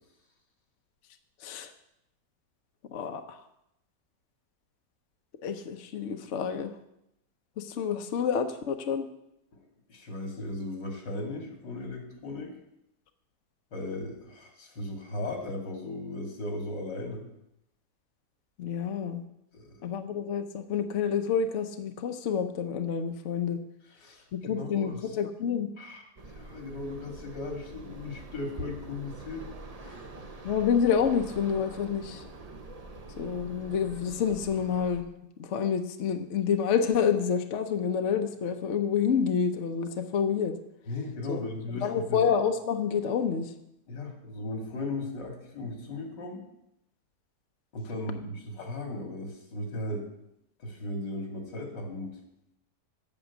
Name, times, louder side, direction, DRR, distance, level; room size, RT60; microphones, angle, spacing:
voice 1, 2.9-3.4 5.4-6.7 7.6-9.1 18.6-19.2 19.8-23.6 24.3-25.7 30.4-32.2 33.2-35.1 35.4-40.5 41.3-41.4 41.7-43.5, left 7 dB, 55° left, 7 dB, 0.9 m, -28 dB
voice 2, 9.6-12.6 13.7-17.2 19.5-19.8 23.9-25.2 25.8-26.0 26.3-29.4 29.8-30.1 40.9-42.3 43.9-46.4 47.7-50.1 50.6-52.1, left 2 dB, 85° left, 2 dB, 2.7 m, -37 dB
sound 1, 26.2-35.0, right 2 dB, 40° right, 0.5 m, -45 dB
8.7 x 6.2 x 8.1 m, 0.82 s
omnidirectional pair, 1.9 m